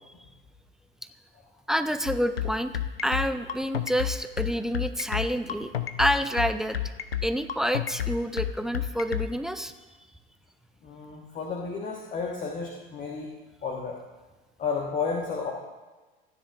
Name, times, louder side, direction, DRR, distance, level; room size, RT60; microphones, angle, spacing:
voice 1, 1.7-2.7 3.0-5.7 6.0-6.8 7.2-9.7, equal, ahead, 11 dB, 0.4 m, -28 dB
sound 1, 2.1-9.3, left 10 dB, 80° left, 0.7 m, -29 dB
voice 2, 10.8-13.3 13.6-14.0 14.6-15.5, left 5 dB, 25° left, 0 dB, 1.4 m, -32 dB
15.0 x 10.0 x 2.5 m, 1.2 s
figure-of-eight pair, 75°, 29 cm